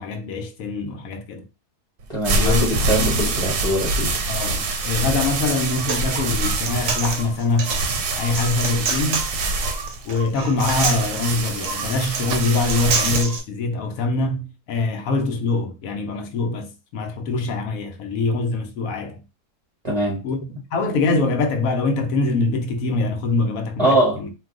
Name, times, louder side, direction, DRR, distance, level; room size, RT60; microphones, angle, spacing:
voice 1, 0.0-1.4 2.4-3.6 4.3-7.8 8.2-9.3 10.1-19.2 20.2-24.3, left 3 dB, 70° left, 1.0 m, -24 dB
sound 1, 2.0-13.2, right 3 dB, 85° right, 1.2 m, -25 dB
voice 2, 2.1-2.6 2.9-4.1 19.8-20.2 23.8-24.4, right 1 dB, 30° right, 0.6 m, -22 dB
Human voice, 5.4-13.4, right 4 dB, 60° right, 0.9 m, -29 dB
2.6 x 2.3 x 3.5 m
omnidirectional pair, 1.7 m